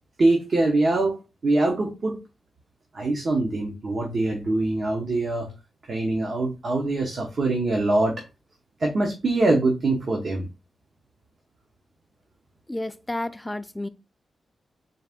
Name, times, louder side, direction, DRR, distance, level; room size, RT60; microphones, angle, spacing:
voice 1, 0.2-2.2 2.9-5.5 5.9-8.3 8.8-10.5, right 2 dB, 55° right, 0.9 m, -23 dB
voice 2, 12.7-13.9, left 1 dB, 10° left, 0.4 m, -31 dB
4.0 x 2.5 x 3.5 m
wide cardioid pair, 100°, 0 cm